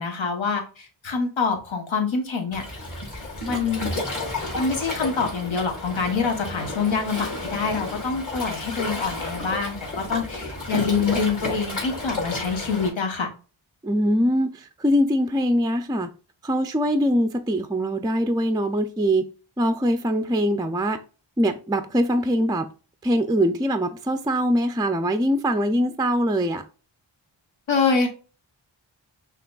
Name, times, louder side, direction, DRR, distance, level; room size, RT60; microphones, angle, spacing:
voice 1, 0.0-2.6 3.4-3.9 4.5-13.3 27.7-28.1, left 5 dB, 70° left, 1.1 m, -25 dB
Waves surf, 2.5-12.9, left 2 dB, 40° left, 1.8 m, -32 dB
voice 2, 13.8-16.1 16.4-19.2 19.6-21.0 21.4-22.7 23.0-26.6, equal, 10° right, 0.4 m, -22 dB
5.7 x 2.9 x 2.3 m
cardioid pair, 45°, 48 cm